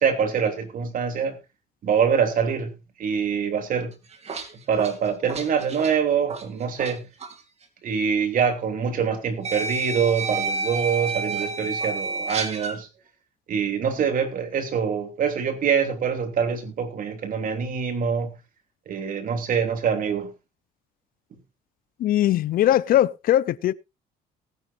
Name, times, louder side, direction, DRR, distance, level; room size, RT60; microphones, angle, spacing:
voice 1, 0.0-1.4 1.8-2.7 3.0-3.9 4.7-7.0 7.8-12.9 13.5-18.3 18.9-20.3, right 7 dB, 55° right, 3.0 m, -24 dB
sound 1, 3.9-6.9 7.2-7.4 8.5-8.6 9.4-12.8, right 3 dB, 40° right, 2.6 m, -30 dB
voice 2, 22.0-23.7, left 12 dB, 60° left, 0.5 m, -20 dB
19.0 x 10.5 x 2.6 m
cardioid pair, 110°, 17 cm